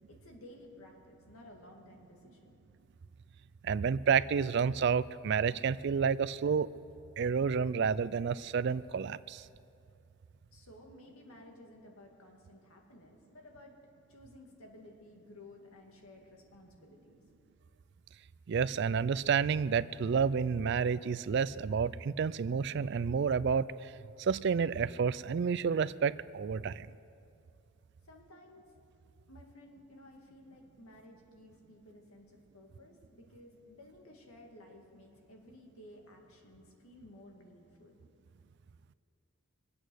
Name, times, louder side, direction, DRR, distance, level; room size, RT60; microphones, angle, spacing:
voice 1, 0.1-2.5 10.5-13.8 14.1-17.2 28.0-28.7 29.3-38.0, left 1 dB, 85° left, 1 dB, 2.2 m, -55 dB
voice 2, 3.6-6.7 7.2-9.4 18.5-23.9 24.2-26.9, right 6 dB, 55° right, 17 dB, 0.3 m, -30 dB
23.5 x 8.5 x 6.3 m, 2.6 s
head